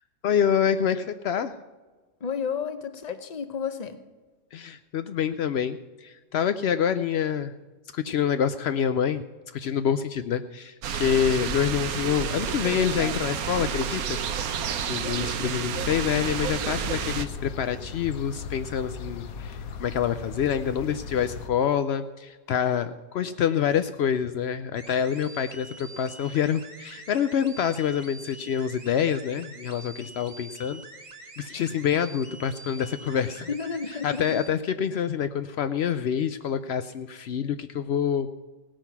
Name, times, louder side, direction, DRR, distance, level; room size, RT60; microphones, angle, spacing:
voice 1, 0.2-1.6 4.5-7.5 7.9-9.2 9.5-14.2 14.9-30.8 31.4-33.5 34.0-38.4, left 8 dB, 85° left, 10 dB, 0.5 m, -26 dB
voice 2, 2.2-4.0 15.0-15.5 33.5-34.4, left 6 dB, 35° left, 10 dB, 0.7 m, -32 dB
sound 1, 10.8-17.3, right 7 dB, 65° right, 1.2 m, -30 dB
sound 2, 15.7-21.5, left 5 dB, 65° left, 1.2 m, -38 dB
sound 3, 24.7-34.5, right 3 dB, 30° right, 1.4 m, -46 dB
17.5 x 9.0 x 5.9 m, 1.3 s
omnidirectional pair, 1.7 m